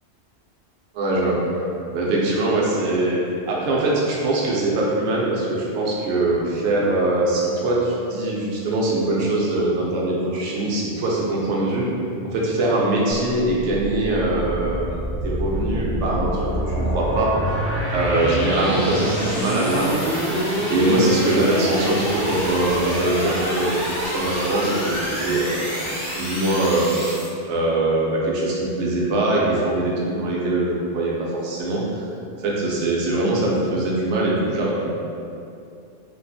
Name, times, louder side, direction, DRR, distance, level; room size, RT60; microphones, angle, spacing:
voice 1, 0.9-1.4 1.9-11.8 12.2-14.9 15.2-17.6 17.9-23.8 24.0-25.6 26.1-27.1 27.5-32.1 32.4-34.9, right 2 dB, 70° right, -4 dB, 0.8 m, -22 dB
sound 1, 13.1-27.3, equal, 20° right, 1.0 m, -26 dB
2.6 x 2.4 x 2.3 m, 2.6 s
omnidirectional pair, 1.3 m